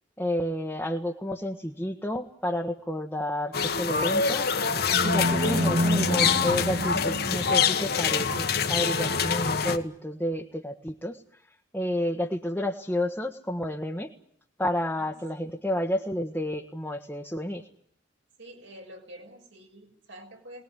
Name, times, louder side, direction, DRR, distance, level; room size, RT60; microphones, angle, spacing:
voice 1, 0.2-4.5 5.0-11.2 11.7-14.1 14.6-17.6, left 1 dB, 10° left, 0 dB, 1.3 m, -30 dB
sound 1, 3.5-9.8, left 6 dB, 55° left, 1.6 m, -25 dB
sound 2, 4.5-7.8, equal, 40° right, 2.2 m, -28 dB
voice 2, 18.4-20.6, right 1 dB, 75° right, 2 dB, 6.2 m, -47 dB
24.0 x 20.0 x 9.9 m, 0.68 s
head